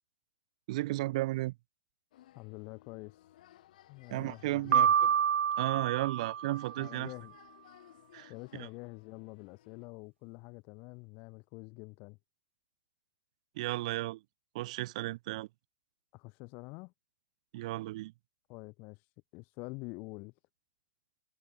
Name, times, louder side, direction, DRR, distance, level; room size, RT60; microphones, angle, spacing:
voice 1, 0.7-1.5 4.1-4.9 5.6-7.1 8.1-8.7 13.6-14.2 14.5-15.5 17.5-18.1, right 18 dB, 35° right, 3.0 m, -34 dB
sound 1, 2.1-9.9, left 13 dB, 40° left, 7.0 m, -60 dB
voice 2, 2.3-3.3 3.9-4.9 6.8-7.4 8.3-12.2 16.1-16.9 18.5-19.0 19.3-20.3, left 28 dB, 25° left, 3.3 m, -46 dB
Piano, 4.7-6.9, right 8 dB, 85° right, 0.6 m, -28 dB
hypercardioid pair, 175°, 6 cm